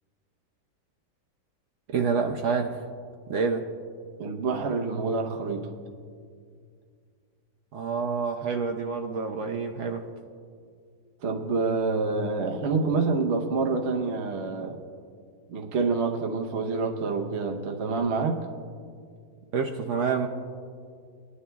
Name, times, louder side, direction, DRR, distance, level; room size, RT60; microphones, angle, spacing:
voice 1, 1.9-2.8 3.3-3.6 7.7-10.0 19.5-20.3, right 5 dB, 75° right, 3 dB, 0.6 m, -27 dB
voice 2, 4.2-5.7 11.2-14.8 15.5-18.4, right 4 dB, 50° right, 3 dB, 0.9 m, -27 dB
19.0 x 11.0 x 2.3 m, 2.2 s
omnidirectional pair, 1.9 m